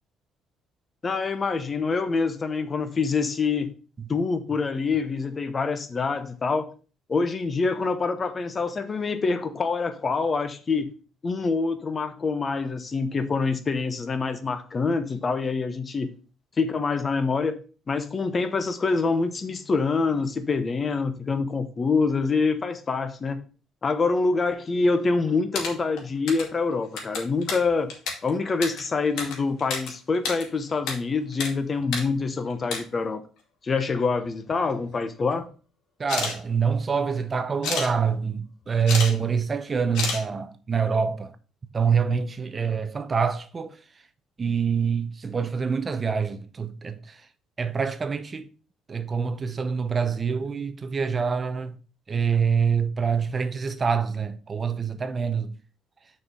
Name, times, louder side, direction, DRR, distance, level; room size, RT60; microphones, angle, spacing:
voice 1, 1.0-3.7 4.1-6.7 7.1-10.9 11.2-16.1 16.6-17.6 17.9-23.4 23.8-27.9 28.2-33.2 33.6-35.5, left 4 dB, 30° left, 0.9 m, -26 dB
sound 1, 25.3-26.6 26.8-29.9 30.1-31.0 31.2-31.5 31.8-32.0 32.5-32.8 33.8-33.9 34.2-34.9 36.0-36.4 37.6-37.9 38.6-39.1 39.4-39.5 39.9-40.2, left 4 dB, 80° left, 2.5 m, -30 dB
voice 2, 36.0-41.4 41.7-43.8 44.4-47.3 47.6-48.5 48.9-51.8 52.1-55.5, right 6 dB, 25° right, 0.7 m, -26 dB
6.5 x 4.6 x 5.4 m
cardioid pair, 135°, 0 cm